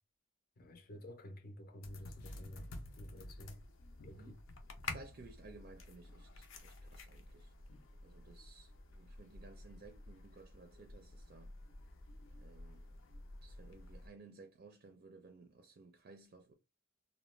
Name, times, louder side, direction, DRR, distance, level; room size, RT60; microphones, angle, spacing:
voice 1, 0.6-3.6 4.0-4.4, left 1 dB, 45° left, 0.5 m, -51 dB
sound 1, 1.8-14.1, left 2 dB, 90° left, 0.6 m, -51 dB
voice 2, 4.8-7.5 8.0-11.5 12.4-12.9 13.4-16.5, right 3 dB, 50° right, 0.4 m, -57 dB
2.3 x 2.1 x 3.1 m
head